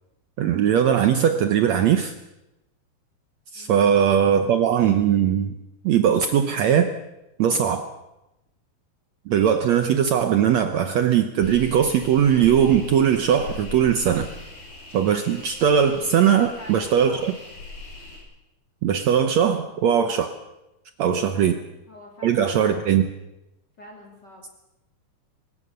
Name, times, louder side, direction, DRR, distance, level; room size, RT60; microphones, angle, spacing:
voice 1, 0.4-2.1 3.5-5.5 5.8-7.0 7.4-7.9 9.3-14.3 14.9-17.3 18.8-20.3 21.0-21.6 22.2-23.1, right 8 dB, 85° right, 9 dB, 1.5 m, -20 dB
voice 2, 3.5-3.9 16.2-17.3 21.2-21.5 21.9-22.9 23.8-24.4, left 1 dB, 30° left, 1 dB, 3.5 m, -45 dB
sound 1, 11.4-18.2, left 3 dB, 85° left, 8.2 m, -39 dB
22.5 x 20.0 x 6.6 m, 0.94 s
omnidirectional pair, 4.4 m